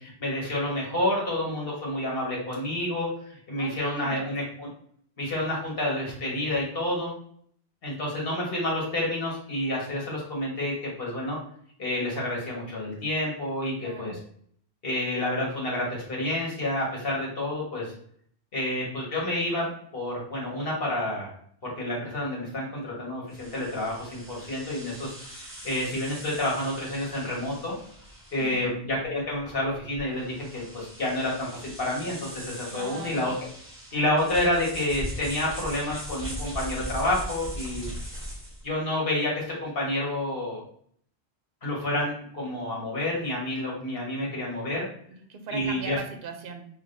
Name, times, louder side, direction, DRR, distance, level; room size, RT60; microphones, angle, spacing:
voice 1, 0.0-4.7 5.2-7.1 7.8-11.4 11.8-14.2 14.8-17.9 18.5-21.3 21.6-25.1 25.6-27.8 28.3-33.3 33.9-37.9 38.6-40.6 41.6-44.9 45.5-46.0, left 1 dB, 60° left, -4 dB, 1.6 m, -29 dB
voice 2, 3.6-4.3 13.8-14.2 28.4-28.8 32.7-33.3 45.1-46.7, right 5 dB, 65° right, 5 dB, 0.8 m, -39 dB
sound 1, 23.3-38.7, equal, 10° right, 1.1 m, -40 dB
4.8 x 2.9 x 2.6 m, 0.62 s
omnidirectional pair, 1.1 m